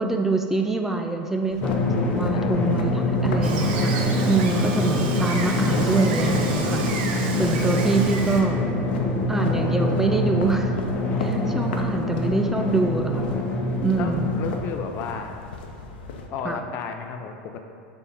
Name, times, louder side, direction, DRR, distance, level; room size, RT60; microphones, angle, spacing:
voice 1, 0.0-1.7 2.1-3.9 4.3-8.6 9.3-10.7 11.2-13.3 13.8-14.3 16.4-16.6, right 3 dB, 5° right, 3 dB, 0.4 m, -25 dB
sound 1, 1.5-16.3, left 2 dB, 85° left, 0.8 m, -38 dB
Drum, 1.6-14.6, left 1 dB, 30° left, 1.2 m, -24 dB
voice 2, 2.3-2.7 4.2-4.4 13.9-15.4 16.3-17.6, left 6 dB, 50° left, 5 dB, 0.6 m, -33 dB
Gull seagull, 3.4-8.4, right 4 dB, 70° right, 0.9 m, -31 dB
7.0 x 3.6 x 5.5 m, 2.3 s
supercardioid pair, 120°, 5 cm